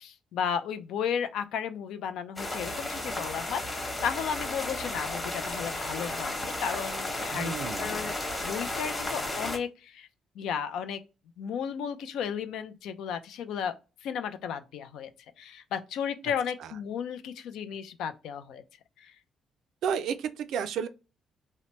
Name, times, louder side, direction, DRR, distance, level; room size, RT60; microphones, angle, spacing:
voice 1, 0.0-10.1 10.4-11.0 11.4-13.7 14.0-15.1 15.4-18.6 19.0-19.1, left 7 dB, 80° left, 0.4 m, -34 dB
sound 1, 2.4-9.6, left 1 dB, 20° left, 0.9 m, -34 dB
voice 2, 7.3-8.2 16.6-16.7 19.8-20.9, right 7 dB, 75° right, 0.4 m, -32 dB
2.8 x 2.1 x 3.0 m
cardioid pair, 110°, 0 cm